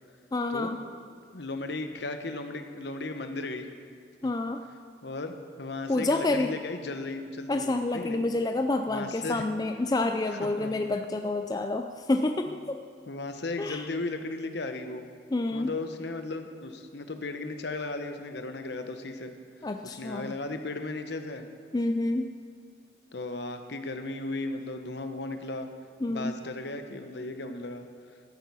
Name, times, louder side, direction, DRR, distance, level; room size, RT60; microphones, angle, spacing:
voice 1, 0.3-0.8 4.2-4.6 5.9-6.5 7.5-12.8 13.6-13.9 15.3-15.7 19.6-20.4 21.7-22.3 26.0-26.4, left 2 dB, 20° left, 6 dB, 0.3 m, -28 dB
voice 2, 1.3-3.7 4.2-4.3 5.0-8.2 8.9-9.5 10.3-10.7 13.1-15.1 15.5-19.3 19.8-21.5 23.1-25.7 26.1-27.9, left 2 dB, 65° left, 7 dB, 0.9 m, -36 dB
13.5 x 9.3 x 5.5 m, 2.2 s
head